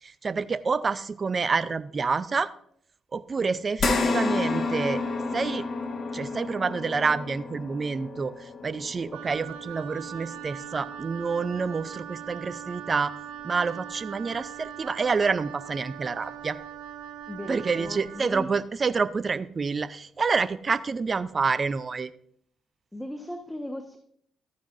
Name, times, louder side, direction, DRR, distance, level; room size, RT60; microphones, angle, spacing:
voice 1, 0.0-2.5 3.1-5.0 5.3-5.6 6.1-13.1 13.4-16.6 17.5-22.1, right 4 dB, 40° right, 15 dB, 0.5 m, -28 dB
sound 1, 3.8-12.4 12.8-13.0 14.4-14.5, left 3 dB, 50° left, 1.7 m, -31 dB
Wind instrument woodwind instrument, 9.1-18.3, right 10 dB, 80° right, 1.4 m, -41 dB
voice 2, 17.3-18.5 22.9-24.0, left 1 dB, 10° left, 5 dB, 1.2 m, -37 dB
13.5 x 9.5 x 2.6 m, 0.64 s
hypercardioid pair, 50°, 0 cm